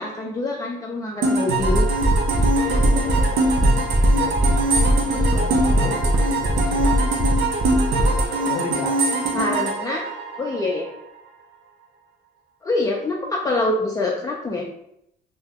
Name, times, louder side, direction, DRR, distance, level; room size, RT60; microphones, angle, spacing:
voice 1, 0.0-1.9 9.3-10.0 10.4-10.9 12.6-14.7, left 2 dB, 20° left, -1 dB, 0.4 m, -25 dB
sound 1, 1.2-10.9, right 2 dB, 80° right, 0.6 m, -23 dB
sound 2, 1.6-8.3, right 1 dB, 30° right, 0.5 m, -20 dB
voice 2, 2.5-3.7 4.1-4.6 5.1-6.0 6.3-7.2 8.5-9.0, left 5 dB, 85° left, 4 dB, 0.5 m, -34 dB
2.7 x 2.1 x 3.5 m, 0.75 s
cardioid pair, 110°, 17 cm